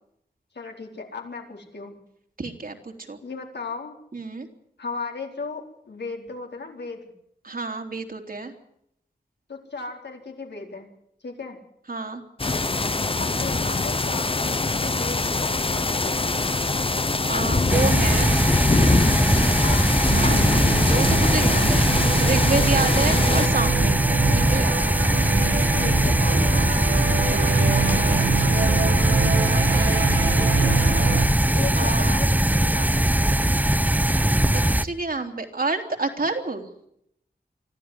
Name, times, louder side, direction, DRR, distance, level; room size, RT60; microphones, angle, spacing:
voice 1, 0.5-2.0 3.2-4.0 4.8-7.1 9.5-10.9 11.2-11.6 13.2-16.2 19.6-19.9 23.3-23.8 25.8-26.7 30.4-30.9 31.5-33.4, left 4 dB, 85° left, 2 dB, 4.2 m, -36 dB
voice 2, 2.4-3.2 4.1-4.5 7.4-8.5 11.9-12.2 17.3-18.3 18.7-19.8 20.1-23.9 24.3-25.0 27.3-28.3 29.5-30.4 31.7-32.2 34.4-36.7, right 3 dB, 55° right, 3 dB, 3.2 m, -30 dB
sound 1, 12.4-23.5, left 3 dB, 30° left, 0.9 m, -23 dB
sound 2, 17.7-34.8, right 1 dB, 10° right, 0.9 m, -21 dB
sound 3, 20.1-31.3, right 6 dB, 80° right, 2.3 m, -27 dB
25.0 x 14.0 x 9.8 m, 0.74 s
wide cardioid pair, 60°, 17 cm